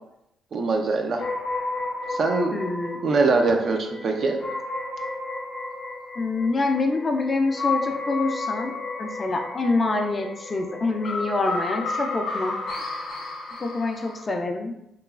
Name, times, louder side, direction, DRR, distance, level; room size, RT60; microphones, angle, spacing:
voice 1, 0.5-1.3 2.1-2.5 3.0-4.4, right 3 dB, 50° right, 3 dB, 0.4 m, -22 dB
sound 1, 1.2-14.2, left 3 dB, 65° left, 0.7 m, -32 dB
voice 2, 2.5-3.0 6.2-8.7 9.0-12.6 13.6-14.7, left 3 dB, 30° left, 4 dB, 0.4 m, -26 dB
3.0 x 2.3 x 2.3 m, 0.83 s
cardioid pair, 90°, 0 cm